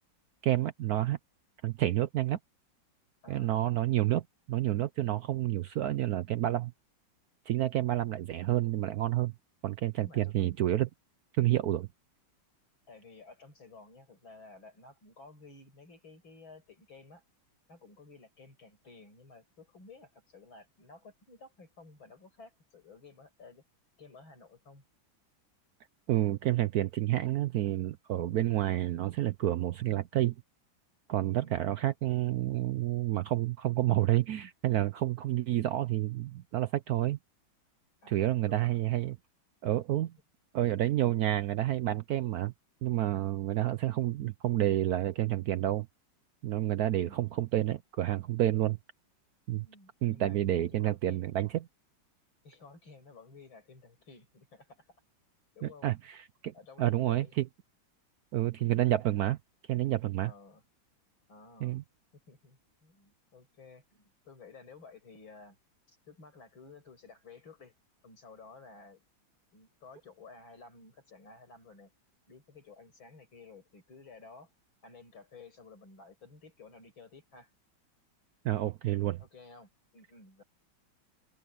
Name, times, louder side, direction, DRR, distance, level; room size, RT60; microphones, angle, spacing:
voice 1, 0.4-1.2 1.6-2.4 3.3-6.7 7.5-9.3 9.6-10.9 11.4-11.9 26.1-30.3 31.1-37.2 38.1-39.2 39.6-40.1 40.5-42.5 42.8-45.9 46.4-48.8 49.5-49.7 50.0-51.7 55.6-56.2 56.4-57.4 58.3-59.4 59.7-60.3 61.6-61.8 78.4-79.2, right 13 dB, 70° right, 0.9 m, -29 dB
voice 2, 10.0-10.3 11.4-11.5 12.9-17.2 17.7-23.6 24.0-24.8 31.2-31.7 38.0-38.7 46.9-47.3 49.5-51.3 52.4-54.9 55.5-55.9 56.5-57.3 60.2-60.6 61.3-61.8 62.3-65.6 65.9-67.7 68.0-69.0 69.5-71.9 72.3-74.5 74.8-77.5 79.2-80.4, left 4 dB, 85° left, 6.7 m, -54 dB
omnidirectional pair, 2.1 m